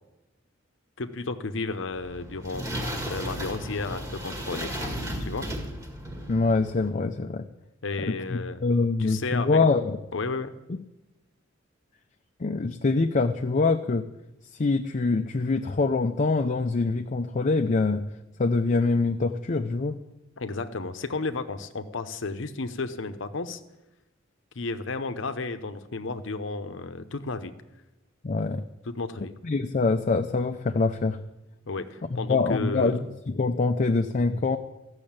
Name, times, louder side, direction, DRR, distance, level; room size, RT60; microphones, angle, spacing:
voice 1, 1.0-2.8 3.1-4.7 5.2-5.5 7.8-8.6 9.0-9.6 10.1-10.5 20.4-23.6 24.6-27.5 28.9-29.3 31.7-33.0, left 3 dB, 70° left, 9 dB, 0.8 m, -32 dB
sound 1, 1.9-6.9, equal, 15° right, 1.7 m, -34 dB
voice 2, 6.3-7.5 8.0-10.0 12.4-14.1 14.6-18.0 18.4-20.0 28.2-28.6 29.4-31.2 32.3-34.6, left 3 dB, 40° left, 5 dB, 0.5 m, -24 dB
14.0 x 6.5 x 8.7 m, 0.97 s
head